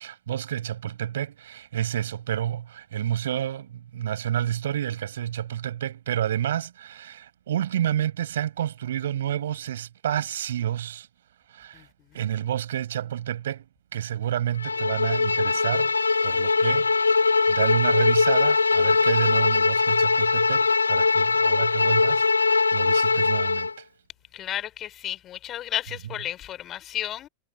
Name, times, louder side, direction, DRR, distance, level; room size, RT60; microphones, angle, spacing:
voice 1, 0.0-11.1 11.5-11.9 12.1-13.6 13.9-15.9 16.2-23.9, right 11 dB, 60° right, 6.8 m, -29 dB
Bowed string instrument, 14.6-23.7, left 4 dB, 80° left, 1.3 m, -21 dB
voice 2, 24.3-27.3, left 12 dB, 30° left, 5.6 m, -32 dB
figure-of-eight pair, 90°, 0 cm